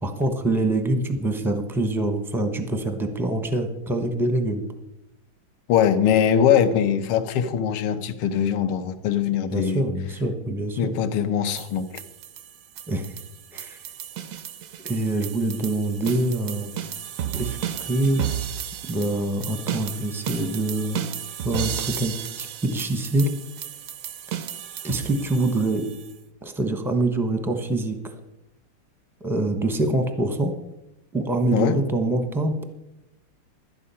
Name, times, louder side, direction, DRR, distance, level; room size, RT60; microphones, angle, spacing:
voice 1, 0.0-4.6 9.5-10.9 12.9-13.1 13.5-13.8 14.8-16.7 17.3-18.2 18.9-21.0 21.4-23.4 24.8-25.9 26.4-28.0 29.2-30.5 31.1-32.6, right 2 dB, 5° right, 6 dB, 0.4 m, -25 dB
voice 2, 5.7-9.8 10.8-12.0 31.5-31.8, left 8 dB, 80° left, 10 dB, 1.8 m, -22 dB
sound 1, 11.6-26.1, right 10 dB, 85° right, 0.7 m, -33 dB
12.0 x 10.0 x 5.6 m, 0.92 s
omnidirectional pair, 2.4 m